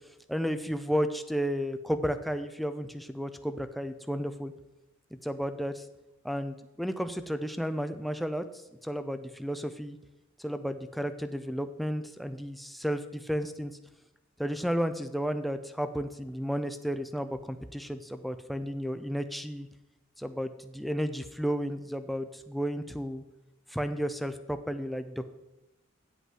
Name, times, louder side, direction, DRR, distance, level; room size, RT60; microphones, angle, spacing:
voice 1, 0.3-4.5 5.2-5.8 6.2-8.4 8.8-10.0 10.4-13.7 14.4-19.7 20.2-23.2 23.7-25.2, equal, ahead, 9 dB, 0.4 m, -32 dB
7.9 x 7.9 x 4.8 m, 0.97 s
head